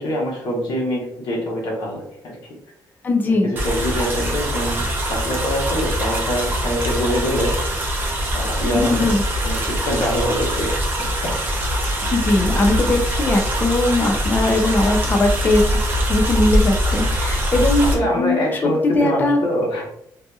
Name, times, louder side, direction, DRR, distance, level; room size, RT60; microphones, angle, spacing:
voice 1, 0.0-2.4 3.3-7.5 8.3-9.1 9.4-11.3 11.7-11.9 17.8-19.8, equal, 75° left, -2 dB, 1.1 m, -24 dB
voice 2, 3.0-3.5 8.6-9.2 12.1-15.8 16.1-19.4, left 2 dB, 25° left, 3 dB, 0.4 m, -20 dB
sound 1, 3.6-18.0, equal, 25° right, 0.6 m, -22 dB
2.6 x 2.6 x 2.3 m, 0.73 s
cardioid pair, 170°, 8 cm